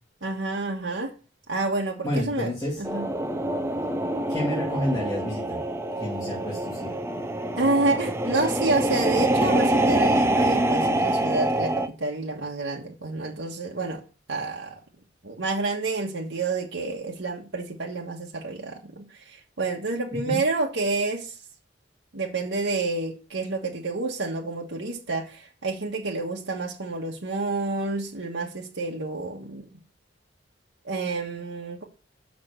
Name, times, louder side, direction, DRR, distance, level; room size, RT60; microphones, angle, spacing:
voice 1, 0.2-1.1 1.5-2.5 2.8-3.0 7.6-14.0 14.3-14.7 15.2-21.3 22.1-29.6 30.8-31.8, right 3 dB, 75° right, 1.4 m, -29 dB
voice 2, 2.0-2.8 4.3-5.6 6.0-7.0 20.3-20.4, left 1 dB, 20° left, 2.5 m, -29 dB
sound 1, 2.8-11.9, right 1 dB, 15° right, 0.6 m, -25 dB
6.9 x 6.2 x 6.6 m
head